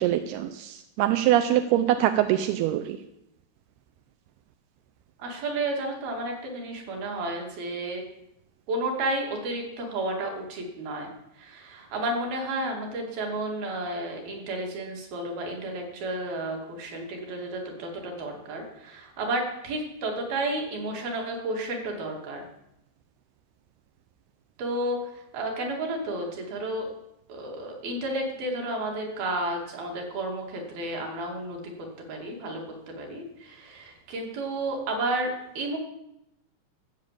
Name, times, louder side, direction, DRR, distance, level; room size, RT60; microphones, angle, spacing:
voice 1, 0.0-3.0, right 12 dB, 80° right, 8 dB, 2.3 m, -24 dB
voice 2, 5.2-8.0 8.7-11.1 11.4-22.5 24.6-26.9 27.3-35.8, right 1 dB, 60° right, 1 dB, 4.1 m, -32 dB
15.0 x 7.6 x 7.5 m, 0.85 s
omnidirectional pair, 5.1 m